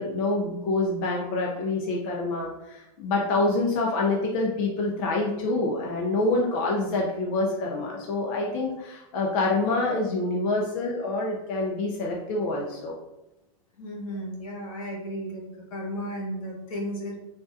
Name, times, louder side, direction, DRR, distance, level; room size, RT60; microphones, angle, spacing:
voice 1, 0.0-13.0, left 2 dB, 45° left, -2 dB, 0.6 m, -26 dB
voice 2, 13.8-15.4 15.7-17.2, equal, 70° left, -1 dB, 1.3 m, -34 dB
3.7 x 2.4 x 2.6 m, 0.93 s
hypercardioid pair, 130°, 18 cm